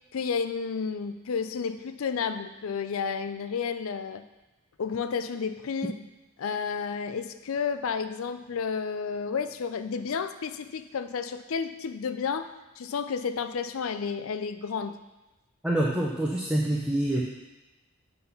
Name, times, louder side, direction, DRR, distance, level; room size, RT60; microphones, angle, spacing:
voice 1, 0.1-4.2 4.8-6.0 6.4-12.5 12.8-15.0, left 6 dB, 70° left, 10 dB, 0.4 m, -31 dB
voice 2, 15.6-17.2, right 1 dB, 5° right, -3 dB, 0.6 m, -26 dB
7.8 x 3.9 x 5.5 m, 1.1 s
head